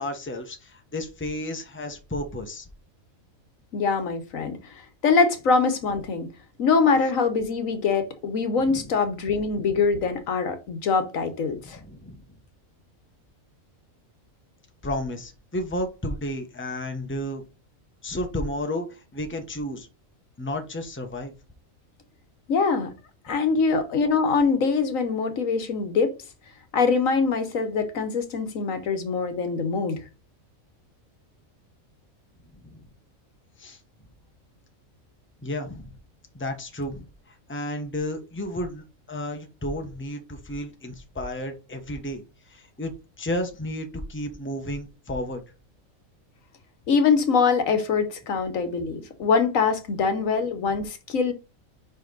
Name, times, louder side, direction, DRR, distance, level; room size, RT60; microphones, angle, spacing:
voice 1, 0.0-2.7 8.6-8.9 11.5-12.2 14.8-17.4 18.0-19.9 20.4-21.3 32.6-32.9 33.6-33.8 35.4-35.9 36.3-42.2 42.5-42.9 43.2-45.4, left 1 dB, 10° left, 1.0 m, -32 dB
voice 2, 3.7-6.3 6.6-11.8 22.5-22.9 23.2-26.1 26.7-30.0 46.9-51.3, left 5 dB, 75° left, 1.4 m, -23 dB
5.3 x 5.2 x 4.0 m
omnidirectional pair, 1.4 m